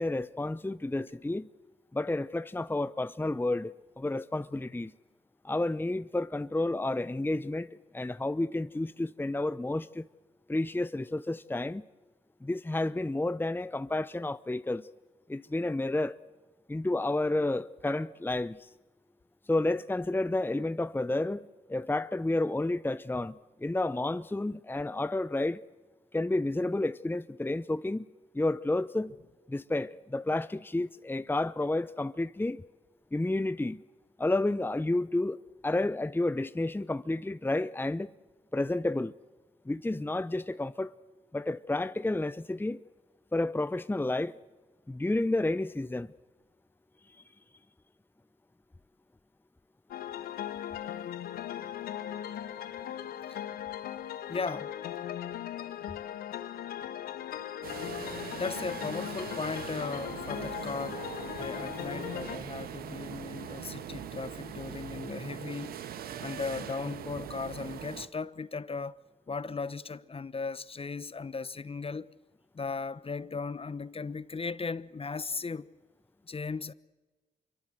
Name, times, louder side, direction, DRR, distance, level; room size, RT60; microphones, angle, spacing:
voice 1, 0.0-1.5 1.9-4.9 5.4-10.1 10.5-11.8 12.4-14.9 15.3-16.1 16.7-18.7 19.5-25.6 26.1-28.1 28.3-29.1 29.5-32.6 33.1-33.8 34.2-38.1 38.5-39.1 39.7-40.9 41.3-42.8 43.3-44.3 44.9-46.1, left 2 dB, 15° left, 0.8 m, -31 dB
sound 1, 49.9-62.4, left 11 dB, 85° left, 1.2 m, -38 dB
voice 2, 54.3-54.7 58.4-61.0 61.4-65.8 66.2-69.0 69.3-72.1 72.5-75.7 76.3-76.7, left 4 dB, 40° left, 1.1 m, -37 dB
sound 2, 57.6-68.1, right 9 dB, 80° right, 1.4 m, -41 dB
26.5 x 23.5 x 7.8 m
supercardioid pair, 45°, 15 cm